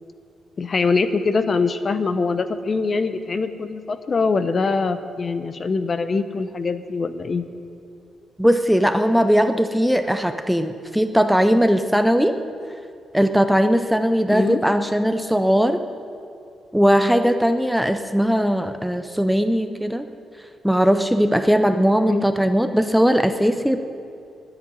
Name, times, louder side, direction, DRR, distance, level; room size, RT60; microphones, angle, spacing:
voice 1, 0.6-7.4 14.3-14.6 22.0-22.3, left 4 dB, 35° left, 11 dB, 0.7 m, -23 dB
voice 2, 8.4-12.4 13.1-15.8 16.7-20.0 20.6-23.8, equal, ahead, 8 dB, 0.5 m, -19 dB
10.5 x 9.2 x 9.9 m, 2.5 s
cardioid pair, 135°, 0 cm